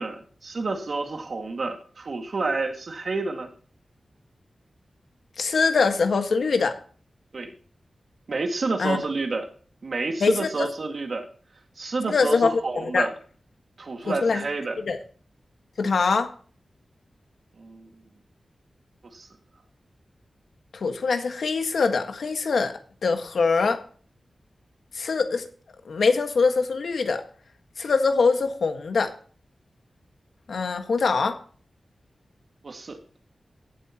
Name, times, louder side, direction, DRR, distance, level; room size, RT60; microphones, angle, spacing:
voice 1, 0.0-3.5 7.3-7.5 8.3-9.5 9.8-11.3 11.8-13.1 13.8-14.8 17.6-17.9 19.0-19.3 32.6-33.0, right 3 dB, 55° right, 4 dB, 2.1 m, -29 dB
voice 2, 5.4-6.8 8.8-9.0 10.2-10.7 12.1-13.1 14.1-14.4 14.8-15.0 15.8-16.3 20.7-23.8 24.9-25.5 25.8-27.2 27.8-29.1 30.5-31.4, left 4 dB, 80° left, 6 dB, 1.6 m, -23 dB
17.0 x 8.0 x 2.9 m, 0.43 s
wide cardioid pair, 140°, 0 cm